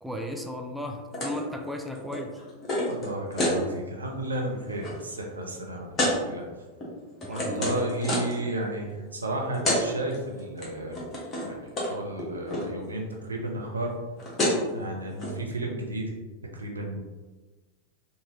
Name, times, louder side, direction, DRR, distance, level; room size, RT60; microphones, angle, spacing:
voice 1, 0.0-2.4 7.2-7.8, left 1 dB, 5° right, 3 dB, 0.3 m, -35 dB
sound 1, 1.1-1.4 1.7-3.6 4.1-4.3 4.6-4.9 6.0-6.2 6.8-8.4 9.3-9.4 9.5-9.8 10.1-10.6 10.9-11.5 11.8-11.9 12.2-12.7 13.9-14.0 14.2-14.7 15.2-15.3, left 1 dB, 20° left, 1.1 m, -28 dB
voice 2, 2.9-6.4 7.3-11.0 11.4-13.9 14.7-16.1 16.5-17.0, right 1 dB, 75° right, 0 dB, 0.6 m, -33 dB
3.6 x 2.7 x 2.9 m, 1.2 s
figure-of-eight pair, 90°, 0 cm